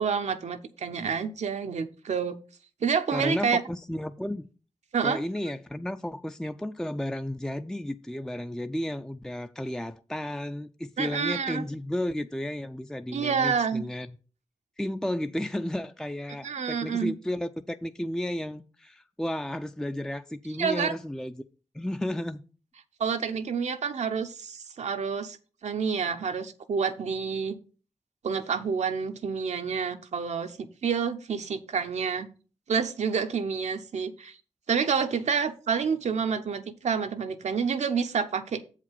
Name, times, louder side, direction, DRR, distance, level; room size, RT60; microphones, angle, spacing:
voice 1, 0.0-2.4 2.8-3.6 4.9-5.2 11.0-11.6 13.1-13.8 16.4-17.1 20.6-20.9 23.0-25.4 25.6-27.6 28.2-32.3 32.7-34.4 34.7-38.6, right 6 dB, 80° right, 0.8 m, -28 dB
voice 2, 3.1-4.5 5.0-14.1 14.8-21.4 21.7-22.4, left 1 dB, 5° left, 0.4 m, -33 dB
7.4 x 5.0 x 5.7 m
cardioid pair, 45°, 12 cm